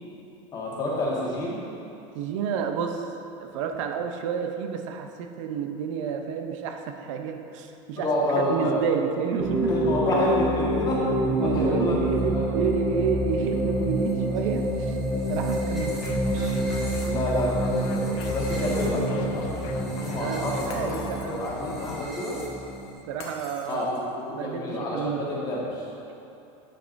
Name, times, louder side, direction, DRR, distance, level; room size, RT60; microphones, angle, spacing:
voice 1, 0.5-1.6 8.0-8.8 9.7-11.0 11.4-12.0 12.3-12.4 17.0-19.5 20.0-21.0 21.3-22.4 23.7-25.9, left 1 dB, 25° left, -5 dB, 1.4 m, -28 dB
voice 2, 2.1-3.1 3.4-9.8 10.1-10.2 11.1-16.6 20.2-22.5 23.1-23.8 24.3-25.3, right 7 dB, 80° right, 5 dB, 0.6 m, -30 dB
sound 1, 9.4-22.9, right 1 dB, 5° right, 1.3 m, -27 dB
sound 2, 15.7-22.1, left 6 dB, 75° left, 0.5 m, -39 dB
Shatter, 18.2-19.1 20.7-21.7 23.2-24.2, left 3 dB, 45° left, 1.0 m, -44 dB
8.9 x 6.2 x 2.5 m, 2.9 s
supercardioid pair, 150°, 16 cm